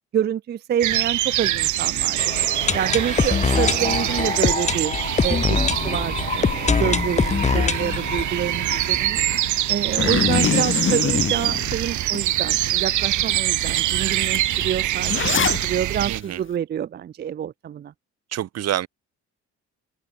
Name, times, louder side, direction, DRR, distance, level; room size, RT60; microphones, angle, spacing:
voice 1, 0.1-2.2 2.7-4.9 5.2-5.6 5.8-9.2 9.7-17.9, right 9 dB, 35° right, 0.4 m, -27 dB
sound 1, 0.8-16.2, right 14 dB, 75° right, 1.1 m, -24 dB
sound 2, 2.2-9.9 10.2-10.3 10.5-10.6 11.1-11.2, left 5 dB, 25° left, 0.7 m, -24 dB
Zipper (clothing), 10.0-12.2 12.7-12.8 13.3-13.4 13.6-15.7, left 7 dB, 40° left, 1.5 m, -24 dB
voice 2, 16.1-16.4 18.3-18.9, right 12 dB, 55° right, 0.7 m, -27 dB
open air
cardioid pair, 90°, 30 cm